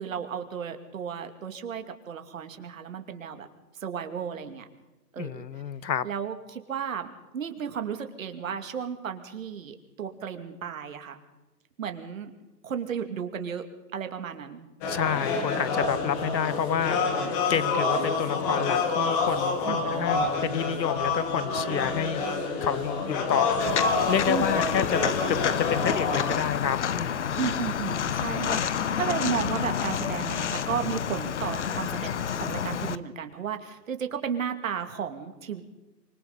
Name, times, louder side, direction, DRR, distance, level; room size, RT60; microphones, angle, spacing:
voice 1, 0.0-3.5 3.8-4.6 5.1-5.5 6.0-11.2 11.8-12.3 12.6-13.6 13.9-14.7 19.6-20.4 20.9-21.2 24.3-24.6 27.4-35.6, right 7 dB, 50° right, 6 dB, 2.6 m, -34 dB
voice 2, 5.2-6.1 14.9-22.2 22.6-27.4, left 8 dB, 85° left, 19 dB, 1.1 m, -29 dB
sound 1, 14.8-26.4, left 4 dB, 15° left, 1.9 m, -27 dB
Walk footsteps, 23.6-32.9, left 8 dB, 45° left, 0.8 m, -29 dB
25.5 x 25.0 x 4.1 m, 1.1 s
hypercardioid pair, 160°, 50 cm